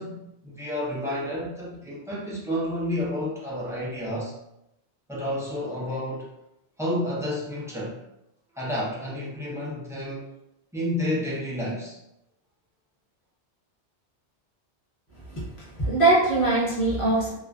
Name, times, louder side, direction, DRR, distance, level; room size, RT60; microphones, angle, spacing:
voice 1, 0.0-4.3 5.1-6.3 6.8-8.0 8.5-10.3 10.7-12.0, left 1 dB, 5° right, -8 dB, 0.3 m, -30 dB
voice 2, 15.3-17.3, right 2 dB, 30° left, -7 dB, 0.8 m, -22 dB
2.4 x 2.3 x 2.2 m, 0.84 s
omnidirectional pair, 1.1 m